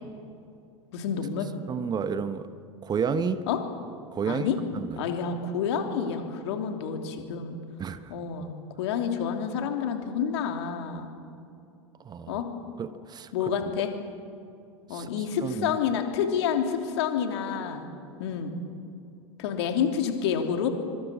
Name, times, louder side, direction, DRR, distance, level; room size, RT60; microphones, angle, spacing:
voice 1, 0.9-1.5 3.5-3.6 4.2-4.6 5.0-7.6 8.1-11.1 12.3-12.5 13.3-13.9 14.9-17.8 18.2-18.5 19.4-20.7, left 7 dB, 60° left, 4 dB, 3.2 m, -29 dB
voice 2, 1.7-2.5 2.8-3.4 4.1-5.1 7.8-8.1 12.0-12.4 12.8-13.5 14.9-15.8, right 6 dB, 25° right, 12 dB, 1.1 m, -31 dB
25.0 x 24.0 x 7.3 m, 2.6 s
figure-of-eight pair, 80°, 16 cm